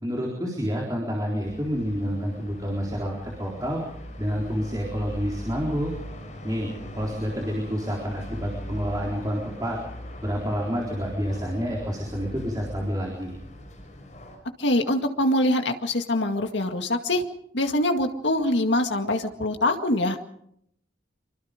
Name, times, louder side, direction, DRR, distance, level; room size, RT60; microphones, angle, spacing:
voice 1, 0.0-3.8 4.2-5.9 6.4-6.7 6.9-9.8 10.2-13.3, equal, 20° right, -1 dB, 3.9 m, -28 dB
sound 1, 1.4-14.4, left 1 dB, 40° left, 6.9 m, -40 dB
voice 2, 14.6-17.2 17.5-20.2, left 1 dB, 75° left, 5 dB, 2.1 m, -24 dB
25.0 x 24.5 x 5.2 m, 0.73 s
head